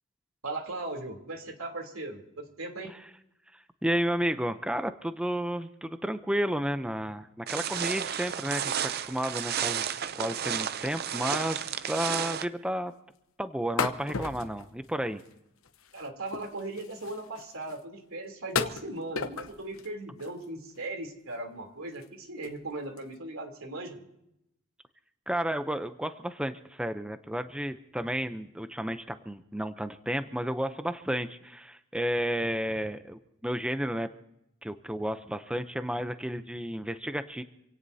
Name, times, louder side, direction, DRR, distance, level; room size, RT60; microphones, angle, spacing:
voice 1, 0.4-2.9 15.9-24.0, right 2 dB, 90° right, 3 dB, 3.2 m, -38 dB
voice 2, 3.5-12.9 13.4-15.2 25.3-34.1 34.6-37.4, equal, 5° right, 9 dB, 0.6 m, -32 dB
sound 1, 7.5-12.5, right 9 dB, 50° right, 0.5 m, -32 dB
sound 2, 11.1-11.3 11.6-11.7 11.9-12.3 12.5-12.6 13.8-15.3 15.6-17.8 18.5-19.9 20.2-20.8 21.3-21.4 21.9-22.1 22.4-22.6 23.0-23.1, left 5 dB, 85° left, 1.0 m, -36 dB
27.0 x 17.5 x 2.8 m, 0.82 s
head